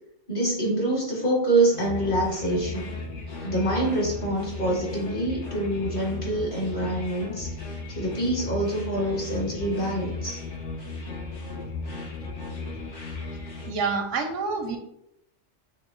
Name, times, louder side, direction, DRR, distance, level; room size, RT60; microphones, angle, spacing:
voice 1, 0.3-2.9 3.4-10.4, right 1 dB, 45° left, -3 dB, 1.4 m, -26 dB
sound 1, 1.7-13.7, left 3 dB, 70° left, 1.3 m, -35 dB
voice 2, 13.7-14.8, right 4 dB, 90° right, 6 dB, 1.0 m, -27 dB
4.5 x 2.1 x 3.7 m, 0.81 s
omnidirectional pair, 1.2 m